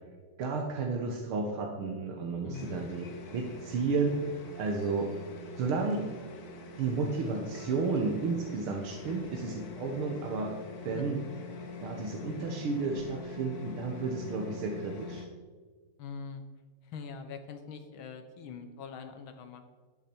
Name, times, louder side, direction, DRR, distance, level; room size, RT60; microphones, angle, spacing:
voice 1, 0.4-4.3 4.6-5.1 5.6-6.1 6.8-10.6 10.8-11.2 11.8-15.2, right 4 dB, 85° right, 2 dB, 2.0 m, -32 dB
voice 2, 2.4-2.9 10.9-11.1 16.0-16.4 16.8-19.6, left 5 dB, 75° left, 8 dB, 1.8 m, -43 dB
sound 1, 2.5-15.3, left 3 dB, 50° left, 1.5 m, -45 dB
13.0 x 8.5 x 4.4 m, 1.4 s
omnidirectional pair, 2.3 m